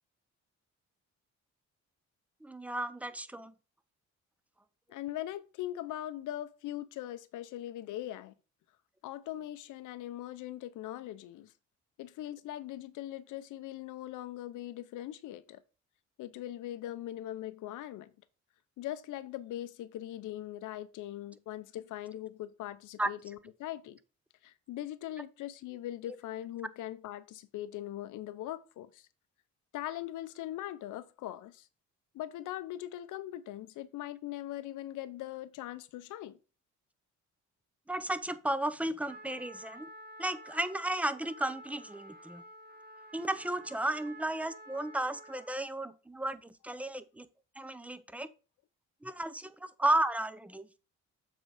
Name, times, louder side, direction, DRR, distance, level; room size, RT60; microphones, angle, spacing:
voice 1, 2.4-3.5 23.0-23.1 37.9-39.9 40.2-42.4 43.1-47.3 47.6-48.3 49.0-50.7, right 1 dB, 5° right, 0.6 m, -34 dB
voice 2, 4.9-8.3 9.0-11.5 12.0-15.6 16.2-18.1 18.8-24.0 24.4-29.1 29.7-31.7 32.1-36.4, left 13 dB, 85° left, 0.7 m, -41 dB
Trumpet, 39.1-45.7, right 1 dB, 35° right, 1.3 m, -51 dB
7.4 x 3.9 x 4.9 m
cardioid pair, 90°, 30 cm